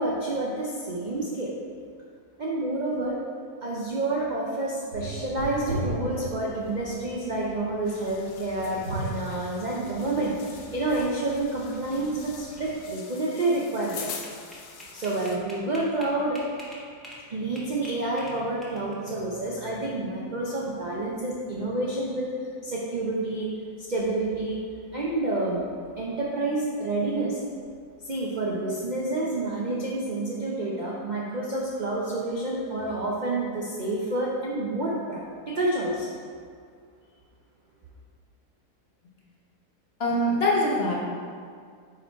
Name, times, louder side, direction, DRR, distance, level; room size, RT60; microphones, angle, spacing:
voice 1, 0.0-1.5 2.4-3.2 3.6-14.1 14.9-16.4 17.3-22.3 22.6-23.5 23.9-24.6 24.9-25.7 26.0-27.4 28.0-36.1, right 2 dB, 60° right, -5 dB, 0.4 m, -29 dB
sound 1, 4.9-12.7, right 1 dB, 45° right, 1.1 m, -38 dB
sound 2, 7.8-15.4, left 6 dB, 75° left, 1.1 m, -44 dB
sound 3, 13.6-17.2 17.6-19.1, equal, ahead, 0.8 m, -44 dB
voice 2, 40.0-40.9, left 1 dB, 50° left, -3 dB, 0.9 m, -23 dB
4.9 x 4.5 x 4.4 m, 2.1 s
omnidirectional pair, 1.7 m